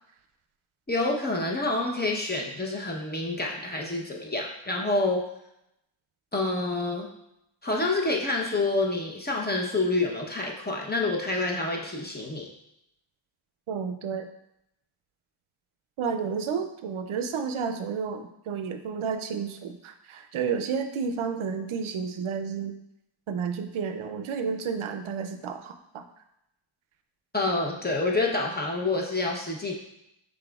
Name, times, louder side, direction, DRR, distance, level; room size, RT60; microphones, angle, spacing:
voice 1, 0.9-5.2 6.3-7.1 7.6-12.5 27.3-29.7, left 2 dB, 20° left, -1 dB, 0.7 m, -27 dB
voice 2, 13.7-14.3 16.0-22.7 23.3-26.0, right 6 dB, 75° right, 7 dB, 0.5 m, -31 dB
5.9 x 3.7 x 2.3 m, 0.82 s
wide cardioid pair, 90°, 49 cm